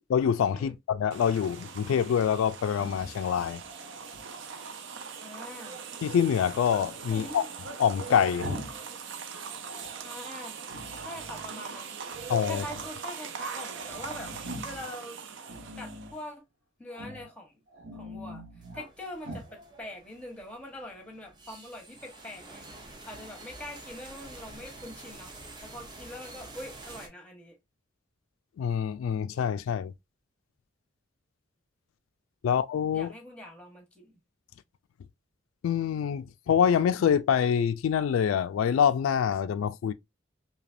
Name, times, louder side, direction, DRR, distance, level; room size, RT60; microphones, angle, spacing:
voice 1, 0.1-3.6 6.0-7.5 7.8-8.6 12.3-12.6 28.6-29.9 32.4-33.1 35.6-39.9, left 8 dB, 85° left, 0.3 m, -25 dB
sound 1, 1.1-16.3, right 5 dB, 60° right, 0.5 m, -41 dB
Growling, 2.7-4.7 7.1-8.9 9.1-10.0 10.6-11.5 12.0-13.0 13.3-13.4 13.6-14.9 15.4-16.2 16.9-17.3 17.7-18.9 19.2-19.5, equal, 80° right, 1.2 m, -44 dB
voice 2, 5.2-5.8 7.1-7.5 10.0-10.6 10.8-12.0 12.5-14.3 14.6-15.2 15.8-16.4 16.8-17.6 17.9-18.4 18.7-22.7 23.0-25.3 25.6-27.6 32.4-32.6 32.9-34.2, left 1 dB, 5° left, 0.9 m, -43 dB
sound 2, 18.6-27.1, right 2 dB, 20° right, 0.7 m, -48 dB
3.2 x 2.8 x 2.4 m
head